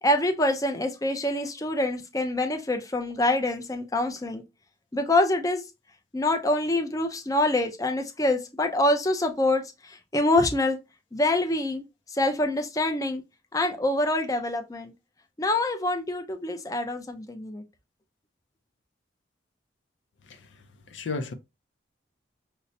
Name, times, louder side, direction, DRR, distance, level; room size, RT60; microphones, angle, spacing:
voice 1, 0.0-4.4 4.9-5.6 6.1-10.8 11.1-13.2 13.5-14.9 15.4-17.6, left 1 dB, 20° left, 0.4 m, -25 dB
voice 2, 20.9-21.3, left 4 dB, 75° left, 0.5 m, -32 dB
5.3 x 2.1 x 2.6 m
head